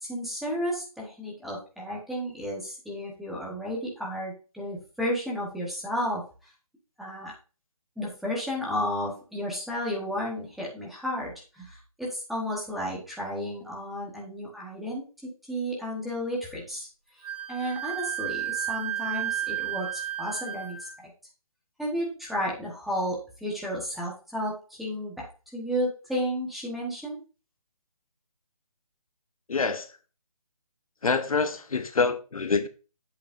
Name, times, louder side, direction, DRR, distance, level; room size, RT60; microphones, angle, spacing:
voice 1, 0.0-6.2 7.0-7.3 8.0-15.0 15.5-16.9 17.5-21.1 21.8-25.2 25.5-27.2, equal, ahead, 1.2 m, -32 dB
Wind instrument woodwind instrument, 17.2-20.9, right 12 dB, 75° right, 3.2 m, -32 dB
voice 2, 29.5-29.9 31.0-32.7, left 4 dB, 70° left, 0.9 m, -26 dB
7.9 x 6.8 x 2.6 m
figure-of-eight pair, 150°, 19 cm